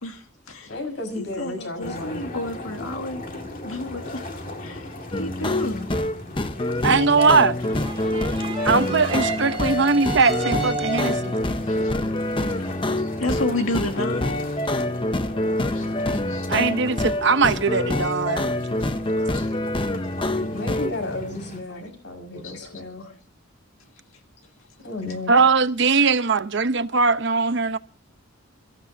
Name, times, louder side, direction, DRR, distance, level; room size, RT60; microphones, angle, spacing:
voice 1, 0.0-0.8 1.2-3.2 3.6-4.2 4.6-6.0 8.0-8.4 9.5-9.9 10.3-10.4 11.5-12.1 12.7-14.4 15.1-16.5 19.0-19.8 20.5-20.9 21.7-21.8 22.3-23.2, left 2 dB, 80° left, 2.0 m, -33 dB
voice 2, 0.7-2.2 19.2-19.4 20.4-23.0 24.8-25.3, left 2 dB, 55° left, 5.6 m, -33 dB
sound 1, 1.8-21.6, left 1 dB, 40° left, 2.1 m, -37 dB
sound 2, 5.1-20.9, left 1 dB, 25° left, 0.7 m, -26 dB
voice 3, 6.8-7.6 8.6-11.3 16.5-18.5 25.3-27.8, right 4 dB, 55° right, 0.9 m, -20 dB
sound 3, 7.6-11.4, right 3 dB, 25° right, 2.1 m, -32 dB
29.0 x 14.5 x 2.8 m
head